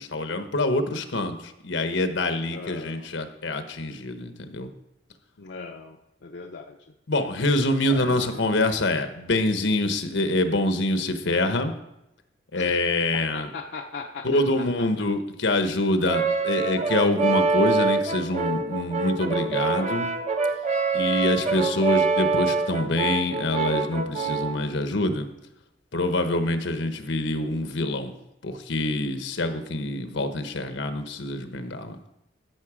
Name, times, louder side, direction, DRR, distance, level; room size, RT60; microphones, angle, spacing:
voice 1, 0.0-4.7 7.1-11.7 12.5-13.5 14.2-20.1 20.9-25.3 25.9-28.1 28.4-32.0, left 2 dB, 85° left, 8 dB, 1.0 m, -25 dB
voice 2, 2.5-3.1 5.4-6.0 6.2-6.8 7.9-8.5 12.5-12.8 13.3-14.9, left 4 dB, 65° left, 2 dB, 0.6 m, -39 dB
Brass instrument, 16.1-24.6, right 4 dB, 40° right, 0.8 m, -25 dB
13.5 x 6.6 x 5.0 m, 0.89 s
head